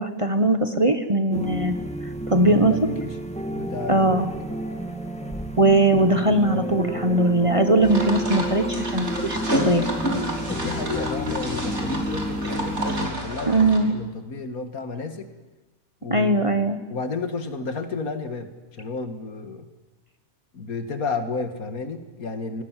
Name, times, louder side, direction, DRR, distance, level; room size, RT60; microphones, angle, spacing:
voice 1, 0.0-1.8 2.3-2.7 3.9-4.3 5.6-9.4 9.7-9.9 13.5-13.9 16.1-16.8, right 2 dB, 25° right, 8 dB, 1.3 m, -20 dB
sound 1, 1.3-13.1, equal, 5° left, 2.1 m, -30 dB
voice 2, 2.4-3.1 3.5-4.2 10.5-15.3 16.0-16.5 16.9-19.7 20.5-22.6, left 4 dB, 75° left, 8 dB, 2.3 m, -32 dB
sound 2, 7.8-13.8, equal, 50° right, 4.2 m, -29 dB
27.0 x 19.5 x 7.6 m, 1.2 s
omnidirectional pair, 1.5 m